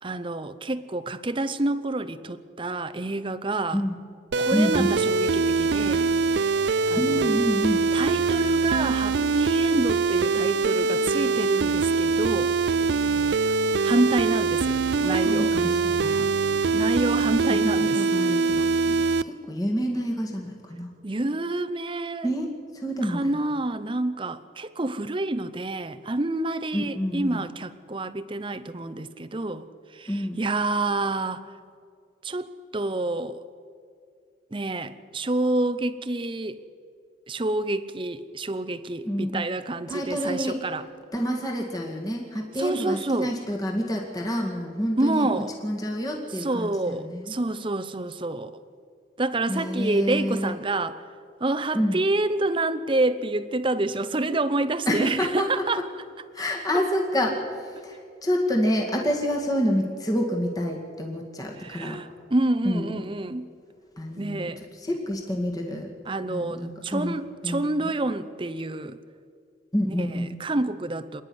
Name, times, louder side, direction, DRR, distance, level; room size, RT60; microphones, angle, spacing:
voice 1, 0.0-3.8 4.4-6.1 6.9-7.3 7.9-12.6 13.8-15.6 16.7-18.0 21.0-22.3 23.0-29.7 29.9-31.4 32.2-33.4 34.5-36.6 37.3-40.8 42.6-43.3 45.0-45.6 46.4-48.6 49.2-51.0 51.4-55.8 56.7-56.8 61.6-63.5 64.2-64.6 66.1-69.0 69.8-71.2, right 2 dB, 30° right, 11 dB, 0.8 m, -28 dB
sound 1, 4.3-19.2, right 4 dB, 65° right, 0.5 m, -23 dB
voice 2, 4.5-4.9 7.0-7.9 14.2-14.3 15.0-16.3 17.5-20.9 22.2-22.5 22.7-23.3 26.7-27.4 30.1-30.4 39.1-39.4 39.9-40.6 41.1-45.3 45.6-47.3 49.5-50.6 51.7-52.0 54.9-55.5 56.3-57.4 57.8-62.0 62.6-63.0 64.0-64.5 64.8-65.9 66.3-67.1 67.4-67.6 69.7-70.4, equal, 20° left, 0 dB, 2.1 m, -28 dB
27.0 x 10.0 x 9.7 m, 2.2 s
head